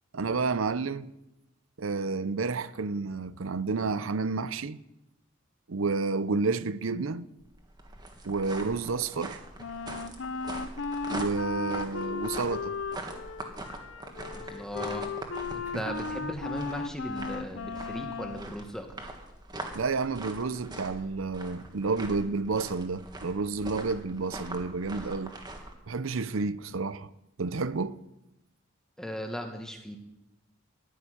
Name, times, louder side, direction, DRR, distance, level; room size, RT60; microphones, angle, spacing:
voice 1, 0.1-1.1 1.8-4.8 5.7-7.3 8.2-9.4 11.1-12.8 15.7-15.8 19.7-25.3 25.9-27.1 27.4-28.0, right 4 dB, 80° right, 0.7 m, -30 dB
sound 1, 7.4-25.7, right 2 dB, 20° right, 1.7 m, -43 dB
Wind instrument woodwind instrument, 9.6-18.5, left 4 dB, 65° left, 0.7 m, -36 dB
voice 2, 14.3-15.1 15.5-18.9 29.0-30.0, equal, 5° left, 1.5 m, -37 dB
14.0 x 7.3 x 10.0 m
head